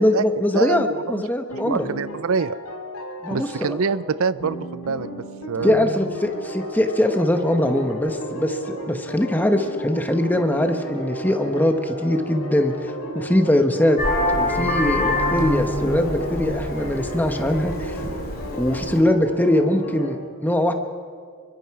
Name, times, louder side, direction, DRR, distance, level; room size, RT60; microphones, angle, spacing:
voice 1, 0.0-1.9 3.2-3.5 5.6-14.0 14.3-18.0 18.6-20.7, left 1 dB, 10° left, 6 dB, 1.1 m, -22 dB
voice 2, 0.5-1.2 1.5-2.6 3.3-5.9, right 5 dB, 60° right, 17 dB, 0.5 m, -26 dB
sound 1, 1.5-20.1, equal, 80° left, 4.3 m, -33 dB
Vehicle horn car horn honking, 14.0-19.0, left 1 dB, 40° left, 2.8 m, -25 dB
25.5 x 23.5 x 4.8 m, 2.1 s
head